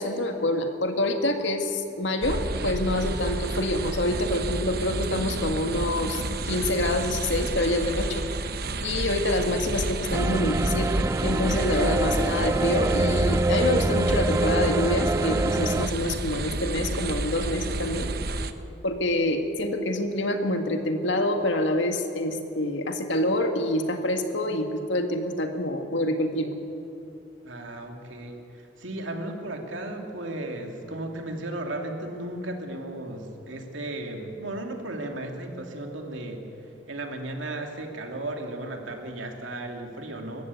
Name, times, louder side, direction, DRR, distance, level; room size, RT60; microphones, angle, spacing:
voice 1, 0.0-8.3 8.8-18.1 18.8-26.5, left 1 dB, 75° left, 5 dB, 1.9 m, -26 dB
sound 1, 2.2-18.5, right 2 dB, 50° right, 0.9 m, -30 dB
sound 2, 10.1-15.9, right 2 dB, 15° right, 0.3 m, -25 dB
voice 2, 27.4-40.5, right 1 dB, 85° right, 3 dB, 2.6 m, -35 dB
21.0 x 15.0 x 8.3 m, 3.0 s
head